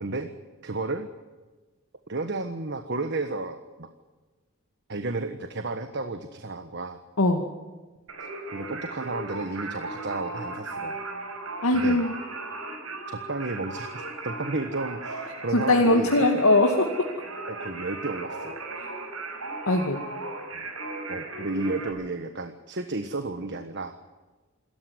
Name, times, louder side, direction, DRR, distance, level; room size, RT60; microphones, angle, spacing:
voice 1, 0.0-0.3 0.6-1.1 2.1-3.9 4.9-7.0 8.5-11.0 11.7-12.0 13.1-16.1 17.5-18.5 20.5-20.6 21.1-24.0, right 3 dB, 55° right, 8 dB, 1.4 m, -32 dB
Singing, 8.1-21.9, right 3 dB, 85° right, 5.7 m, -36 dB
voice 2, 11.6-12.1 15.5-16.9 19.7-20.0, left 2 dB, 85° left, 2 dB, 2.3 m, -20 dB
27.0 x 14.0 x 9.6 m, 1.3 s
head